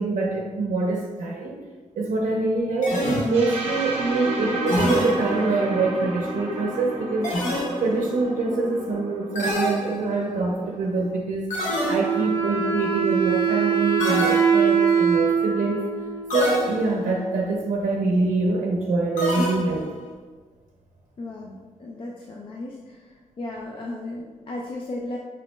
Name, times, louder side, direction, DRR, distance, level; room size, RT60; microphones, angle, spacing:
voice 1, 0.0-1.6 2.0-7.3 7.8-11.5 11.9-15.8 16.3-19.9, right 3 dB, 85° right, -1 dB, 0.5 m, -25 dB
sound 1, 2.8-3.7 4.7-5.7 7.2-8.1 9.3-10.4 11.5-12.3 14.0-14.9 16.3-17.1 19.2-20.0, left 1 dB, 70° left, 0.9 m, -27 dB
sound 2, 3.3-11.2, right 1 dB, 50° right, 0.7 m, -32 dB
Wind instrument woodwind instrument, 11.8-17.3, right 7 dB, 25° left, 0.7 m, -23 dB
voice 2, 21.2-23.0 23.4-25.2, left 2 dB, 40° left, -1 dB, 0.4 m, -35 dB
5.5 x 2.1 x 3.0 m, 1.4 s
wide cardioid pair, 145°, 13 cm